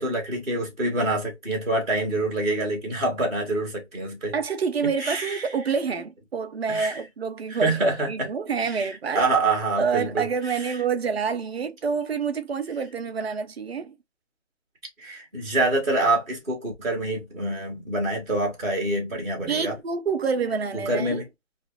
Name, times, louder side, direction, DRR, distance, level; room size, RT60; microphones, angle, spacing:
voice 1, 0.0-4.4 5.0-5.4 6.7-7.0 7.5-8.1 8.6-8.9 9.1-10.6 15.0-19.7 20.7-21.2, right 2 dB, 5° right, 0.5 m, -26 dB
voice 2, 4.3-9.2 9.8-14.0 19.5-21.2, right 5 dB, 55° right, 0.6 m, -27 dB
2.5 x 2.4 x 2.6 m
hypercardioid pair, 155°, 37 cm